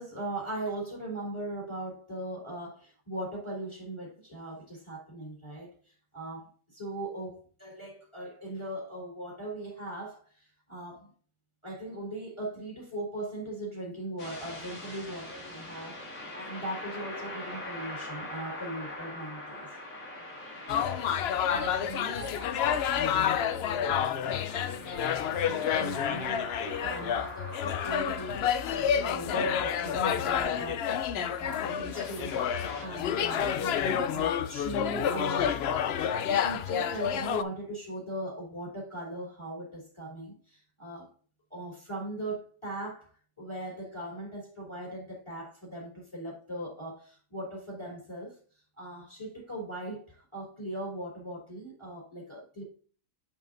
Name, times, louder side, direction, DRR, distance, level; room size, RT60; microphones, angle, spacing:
voice 1, 0.0-11.1 11.6-19.7 20.1-20.2 21.1-35.6 36.1-41.1 41.5-43.1 43.4-48.4 48.8-52.6, right 1 dB, 15° left, 3.4 m, -39 dB
sound 1, 14.2-32.9, left 1 dB, 55° left, 2.7 m, -44 dB
sound 2, 20.7-37.4, left 8 dB, 85° left, 0.5 m, -29 dB
8.0 x 7.2 x 2.5 m
omnidirectional pair, 1.7 m